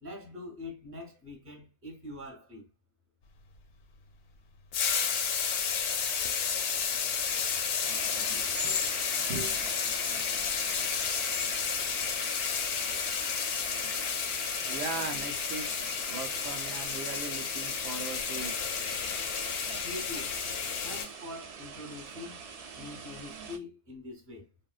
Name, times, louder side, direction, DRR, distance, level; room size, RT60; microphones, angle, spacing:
voice 1, 0.0-2.7 19.8-20.3 20.8-22.4 22.8-24.5, left 2 dB, 15° right, 0.7 m, -43 dB
sound 1, 4.7-21.1, left 6 dB, 70° left, 0.7 m, -31 dB
sound 2, 6.4-12.4, left 5 dB, 25° left, 0.7 m, -43 dB
sound 3, 7.8-23.6, right 5 dB, 60° right, 0.4 m, -45 dB
voice 2, 8.3-8.8 9.3-9.6 14.6-18.6, right 4 dB, 80° right, 0.9 m, -39 dB
3.4 x 2.2 x 2.3 m
omnidirectional pair, 1.1 m